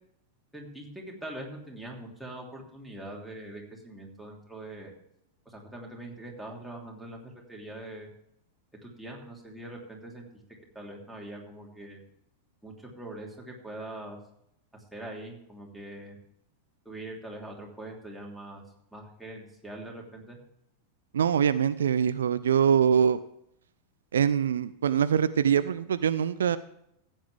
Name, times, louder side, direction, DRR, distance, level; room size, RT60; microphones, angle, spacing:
voice 1, 0.5-4.9 5.4-8.1 8.8-10.3 10.7-12.0 12.6-14.2 14.9-16.2 16.8-18.6 18.9-20.4, right 1 dB, ahead, -2 dB, 3.1 m, -42 dB
voice 2, 21.1-23.2 24.1-26.6, right 8 dB, 65° right, 14 dB, 0.4 m, -24 dB
15.0 x 9.0 x 3.4 m, 0.75 s
figure-of-eight pair, 90°, 0 cm